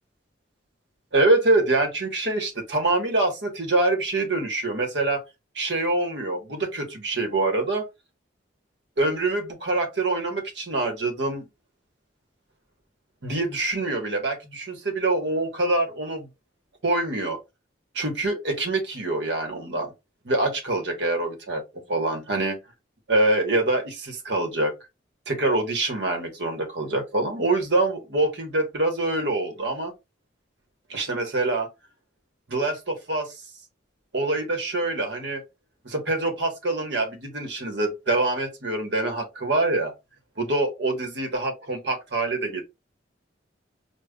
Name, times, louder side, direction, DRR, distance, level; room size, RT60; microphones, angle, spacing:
voice 1, 1.1-5.2 5.5-7.8 9.0-11.5 13.2-16.3 16.8-17.4 17.9-19.9 20.2-21.6 21.9-22.6 23.1-24.7 25.3-29.9 30.9-31.7 32.5-33.4 34.1-35.4 35.8-39.9 40.4-42.6, right 2 dB, 70° right, 1.2 m, -25 dB
5.0 x 2.3 x 2.2 m
head